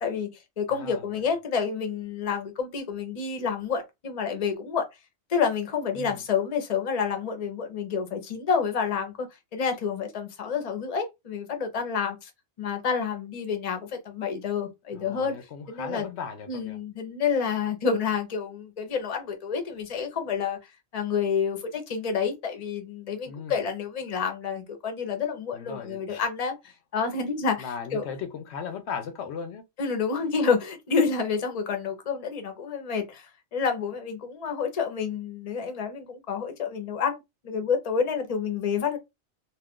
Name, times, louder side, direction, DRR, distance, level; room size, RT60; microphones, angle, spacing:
voice 1, 0.0-4.9 5.3-9.3 9.5-12.3 12.6-15.4 15.7-16.0 16.5-20.6 20.9-26.5 26.9-27.7 27.9-28.0 29.8-37.1 37.4-39.0, left 6 dB, 40° left, 0.7 m, -29 dB
voice 2, 0.7-1.2 5.9-6.2 14.9-16.8 23.3-23.6 25.5-26.2 27.6-29.6, left 6 dB, 70° left, 0.8 m, -37 dB
2.4 x 2.3 x 3.5 m
omnidirectional pair, 1.2 m